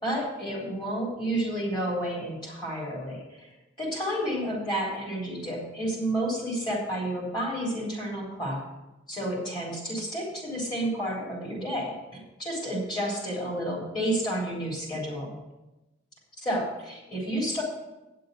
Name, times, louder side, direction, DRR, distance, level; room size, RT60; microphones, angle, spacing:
voice 1, 0.0-3.5 3.8-8.6 9.1-15.3 16.4-17.6, right 1 dB, 25° left, -4 dB, 3.7 m, -31 dB
9.2 x 7.5 x 6.7 m, 1.0 s
head